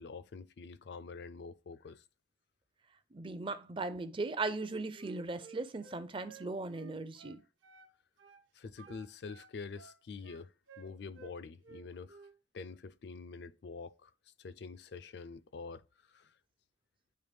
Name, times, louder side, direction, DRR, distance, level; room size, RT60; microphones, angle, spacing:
voice 1, 0.0-2.0 8.5-12.2 12.5-16.4, left 4 dB, 60° left, 0.4 m, -46 dB
voice 2, 3.1-7.4, right 3 dB, 25° right, 0.5 m, -38 dB
Wind instrument woodwind instrument, 4.9-7.9 8.2-8.4 8.8-11.3 11.6-12.3, right 5 dB, 80° right, 1.0 m, -56 dB
8.7 x 3.4 x 3.4 m
head